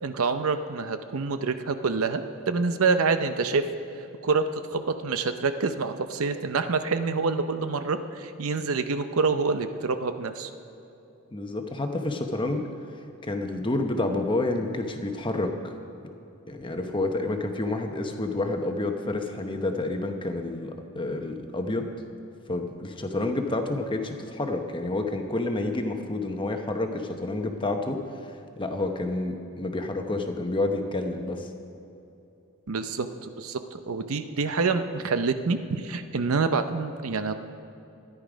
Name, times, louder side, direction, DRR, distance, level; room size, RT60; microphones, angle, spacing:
voice 1, 0.0-3.7 4.2-10.5 32.7-37.3, right 4 dB, 70° right, 9 dB, 0.6 m, -27 dB
voice 2, 11.3-12.7 13.2-15.7 16.5-21.9 22.5-28.0 28.6-31.5, left 2 dB, 25° left, 5 dB, 0.9 m, -29 dB
13.5 x 10.5 x 5.1 m, 2.9 s
head